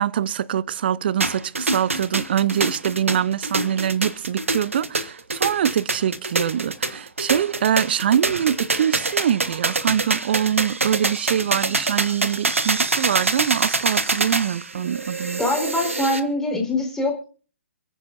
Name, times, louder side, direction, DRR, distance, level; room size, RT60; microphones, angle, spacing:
voice 1, 0.0-15.4, right 9 dB, 50° right, 0.6 m, -24 dB
sound 1, 1.2-16.2, right 3 dB, 75° right, 1.3 m, -25 dB
voice 2, 15.4-17.2, left 2 dB, 5° left, 4.0 m, -23 dB
28.5 x 9.6 x 2.6 m
figure-of-eight pair, 125°, 7 cm